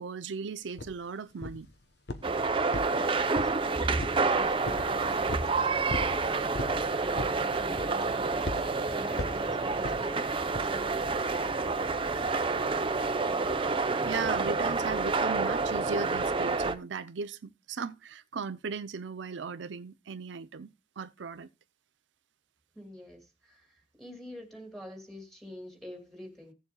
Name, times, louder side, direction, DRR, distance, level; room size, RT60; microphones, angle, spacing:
voice 1, 0.0-1.7 14.0-21.5, right 5 dB, 80° right, 0.5 m, -37 dB
sound 1, 0.8-0.9 1.4-1.7 2.1-2.4 2.7-3.6 4.0-4.3 4.7-4.9 5.3-5.5 5.9-6.2 6.5-6.8 7.2-7.4 7.8-8.1 8.5-8.7 9.2-9.4 9.8-10.0 10.5-10.7, left 2 dB, 60° left, 1.0 m, -36 dB
sound 2, 2.2-16.7, right 4 dB, 30° right, 0.7 m, -29 dB
voice 2, 2.8-6.6 6.9-10.3 10.6-12.0 22.7-26.5, left 1 dB, ahead, 2.3 m, -47 dB
16.0 x 7.1 x 2.3 m
head